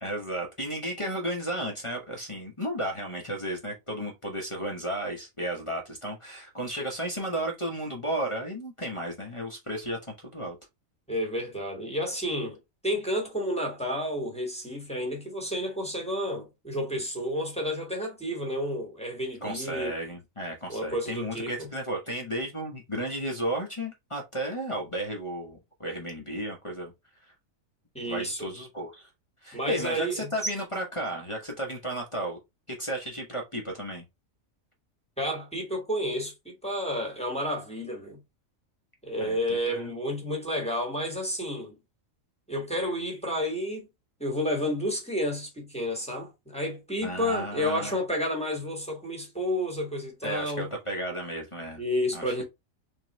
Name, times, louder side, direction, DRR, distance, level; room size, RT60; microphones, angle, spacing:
voice 1, 0.0-10.6 19.4-26.9 28.0-29.1 29.4-32.4 32.7-34.0 39.2-39.4 39.7-39.9 47.0-48.0 50.2-51.8 52.1-52.4, right 1 dB, 25° left, 1.0 m, -33 dB
voice 2, 11.1-12.6 12.8-19.9 20.7-21.7 27.9-28.5 29.5-30.3 35.2-38.2 39.0-41.8 42.5-43.9 44.2-50.7 51.8-52.4, equal, 5° left, 1.4 m, -31 dB
3.8 x 3.7 x 3.0 m
omnidirectional pair, 1.4 m